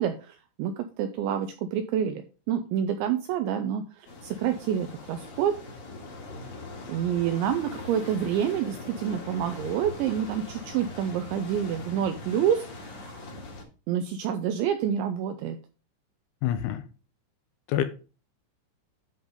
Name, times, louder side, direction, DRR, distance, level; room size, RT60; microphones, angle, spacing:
voice 1, 0.0-5.5 6.9-13.3 13.9-15.6, right 9 dB, 85° right, 8 dB, 2.6 m, -28 dB
sound 1, 4.1-13.6, left 2 dB, 55° left, 1.9 m, -41 dB
voice 2, 16.4-16.8 17.7-17.8, left 11 dB, 80° left, 9 dB, 3.0 m, -26 dB
10.0 x 3.9 x 5.0 m, 0.34 s
omnidirectional pair, 5.9 m